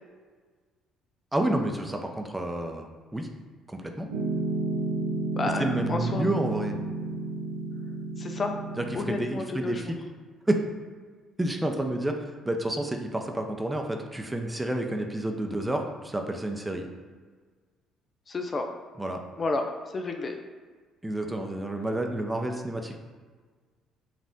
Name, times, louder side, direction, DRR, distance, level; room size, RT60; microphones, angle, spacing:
voice 1, 1.3-3.3 3.7-4.1 5.6-6.8 8.8-10.0 10.5-10.6 11.4-16.9 19.0-19.2 21.0-23.0, right 1 dB, 10° right, 3 dB, 0.6 m, -30 dB
Piano, 4.1-9.2, right 2 dB, 85° right, 0.4 m, -31 dB
voice 2, 5.4-6.3 8.2-8.6 8.9-9.9 18.3-18.7 19.4-20.4, left 3 dB, 35° left, 4 dB, 0.5 m, -31 dB
5.2 x 2.5 x 3.6 m, 1.5 s
hypercardioid pair, 50°, 0 cm